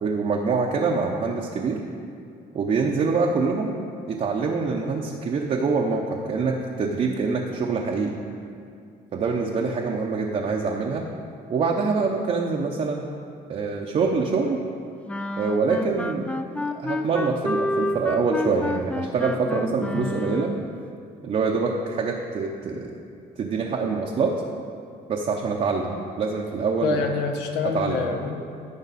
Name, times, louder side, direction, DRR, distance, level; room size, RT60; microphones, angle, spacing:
voice 1, 0.0-1.8 2.5-3.8 4.1-8.2 9.1-11.0 11.5-13.0 13.5-14.6 15.4-16.3 16.7-20.5 21.2-22.9 23.4-24.3 25.1-27.0 27.7-28.0, right 4 dB, 40° right, 0 dB, 0.7 m, -25 dB
sound 1, 15.1-20.7, left 1 dB, 10° left, 0.3 m, -30 dB
voice 2, 26.8-28.4, left 5 dB, 85° left, 4 dB, 1.0 m, -27 dB
13.5 x 5.2 x 4.1 m, 2.4 s
cardioid pair, 110°, 17 cm